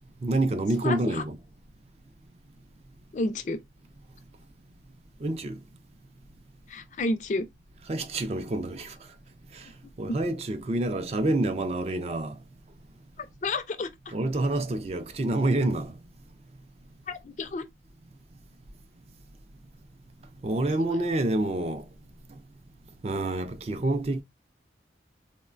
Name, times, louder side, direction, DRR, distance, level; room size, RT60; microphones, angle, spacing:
voice 1, 0.2-1.4 5.2-5.6 7.9-9.0 9.5-9.7 10.0-12.4 14.1-15.9 20.4-21.8 23.0-24.2, right 2 dB, 35° right, 0.3 m, -27 dB
voice 2, 0.8-1.2 3.1-3.6 6.7-7.5 10.1-10.2 13.2-14.1 17.1-17.6, left 2 dB, 45° left, 0.4 m, -31 dB
3.7 x 2.1 x 2.4 m
head